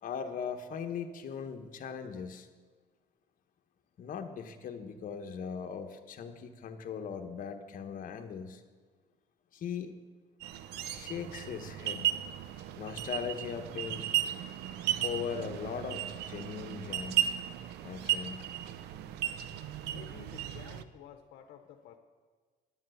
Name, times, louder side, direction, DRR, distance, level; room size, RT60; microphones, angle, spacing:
voice 1, 0.0-2.5 4.0-8.6 9.5-9.9 10.9-12.1 12.8-14.1 15.0-17.3 17.8-18.4, left 7 dB, 55° left, 6 dB, 1.2 m, -39 dB
sound 1, 10.4-20.8, right 11 dB, 80° right, 0.6 m, -35 dB
voice 2, 19.9-22.0, left 9 dB, 75° left, 5 dB, 0.9 m, -51 dB
11.0 x 7.4 x 7.8 m, 1.5 s
cardioid pair, 110°, 17 cm